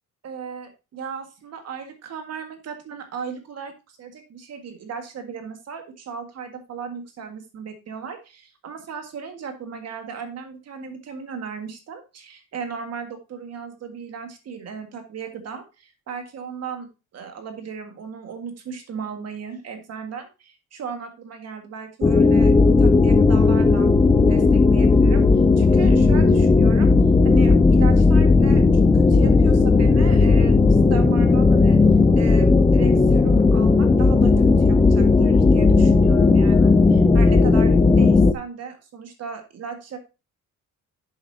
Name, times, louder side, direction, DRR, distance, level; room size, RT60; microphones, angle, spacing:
voice 1, 0.2-22.5 22.8-23.9 24.3-26.9 27.2-28.6 28.9-30.6 30.9-31.8 32.1-40.0, right 6 dB, 50° right, 6 dB, 1.8 m, -36 dB
sound 1, 22.0-38.3, left 3 dB, 15° left, 0.5 m, -15 dB
10.0 x 7.4 x 2.8 m, 0.28 s
cardioid pair, 170°, 32 cm